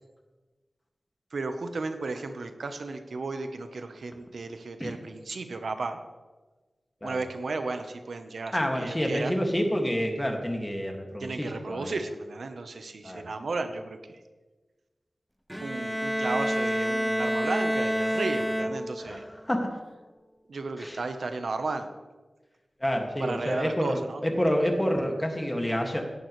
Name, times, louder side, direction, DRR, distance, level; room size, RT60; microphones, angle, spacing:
voice 1, 1.3-6.0 7.0-9.4 11.2-14.0 15.6-19.2 20.5-21.9 23.2-24.2, right 3 dB, 85° right, 7 dB, 0.9 m, -34 dB
voice 2, 8.5-11.9 13.0-13.3 19.0-19.7 20.8-21.0 22.8-26.0, equal, 15° left, 2 dB, 2.0 m, -28 dB
Bowed string instrument, 15.5-19.2, equal, ahead, 0.5 m, -28 dB
17.5 x 11.0 x 3.2 m, 1.3 s
wide cardioid pair, 70°, 0 cm